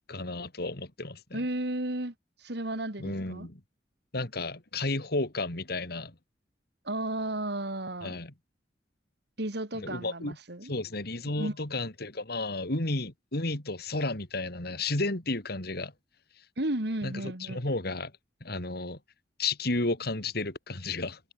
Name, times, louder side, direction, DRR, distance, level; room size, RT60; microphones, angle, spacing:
voice 1, 0.1-1.4 3.0-3.6 4.1-6.1 8.0-8.3 9.7-10.4 10.6-15.9 17.0-18.1 18.4-19.0 19.4-21.2, left 2 dB, 60° left, 3.1 m, -32 dB
voice 2, 1.3-2.1 2.4-3.5 6.8-8.2 9.4-10.7 11.3-11.5 16.6-17.6, right 1 dB, 65° right, 2.8 m, -33 dB
head